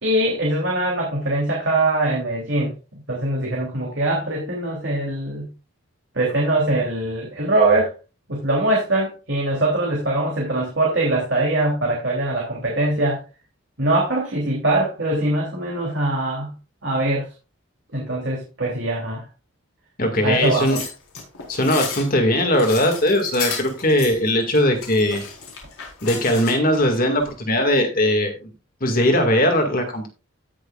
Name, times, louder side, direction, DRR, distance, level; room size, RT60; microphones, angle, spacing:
voice 1, 0.0-2.7 3.1-5.5 6.1-7.9 8.3-13.2 13.8-16.5 16.8-17.3 17.9-19.2 20.2-20.8, right 2 dB, 55° right, -3 dB, 3.1 m, -22 dB
voice 2, 20.0-20.8 21.5-25.2 26.0-28.5 28.8-30.1, left 1 dB, 40° left, 4 dB, 2.1 m, -19 dB
sound 1, 20.4-26.8 27.2-27.3, left 6 dB, 90° left, 4.3 m, -33 dB
17.0 x 6.4 x 2.4 m, 0.30 s
head